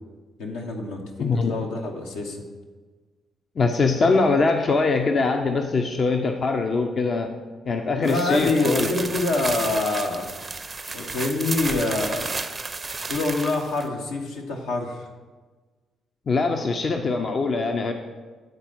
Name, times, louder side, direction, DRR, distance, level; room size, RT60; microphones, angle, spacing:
voice 1, 0.4-2.4 8.0-10.3 10.9-12.4 13.1-15.1, left 2 dB, 75° left, 0 dB, 1.0 m, -26 dB
voice 2, 1.2-1.6 3.6-7.3 7.7-8.9 16.3-17.9, left 3 dB, 45° left, 4 dB, 0.6 m, -22 dB
sound 1, 8.0-13.9, right 3 dB, 30° right, 0.5 m, -32 dB
8.1 x 4.1 x 6.0 m, 1.3 s
hypercardioid pair, 45°, 0 cm